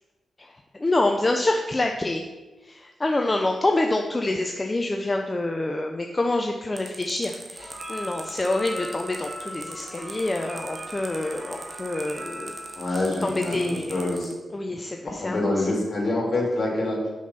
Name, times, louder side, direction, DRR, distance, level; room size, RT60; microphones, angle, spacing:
voice 1, 0.8-2.2 2.6-12.5 12.9-14.0 14.5-15.7, left 2 dB, 30° left, 3 dB, 0.6 m, -27 dB
sound 1, 6.8-14.3, right 3 dB, 40° right, 1.2 m, -41 dB
sound 2, 7.6-12.9, right 1 dB, 25° right, 1.5 m, -39 dB
voice 2, 12.8-14.3 15.2-17.0, left 2 dB, 55° left, -1 dB, 2.6 m, -26 dB
6.3 x 5.3 x 5.7 m, 1.2 s
cardioid pair, 55°, 0 cm